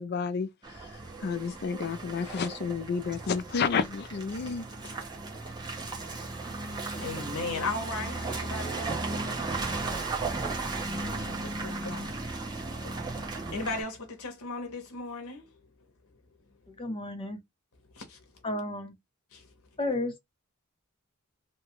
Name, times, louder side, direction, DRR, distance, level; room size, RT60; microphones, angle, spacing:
voice 1, 0.0-4.9, left 5 dB, 50° left, 0.4 m, -31 dB
Car passing by / Engine, 0.6-13.8, right 3 dB, 20° right, 0.9 m, -35 dB
voice 2, 7.0-9.1 11.0-12.2 12.8-15.5 17.9-18.2 19.3-19.5, left 3 dB, 85° left, 0.8 m, -37 dB
voice 3, 16.8-17.4 18.4-18.9 19.8-20.1, left 2 dB, 25° left, 0.8 m, -32 dB
2.8 x 2.2 x 2.9 m
head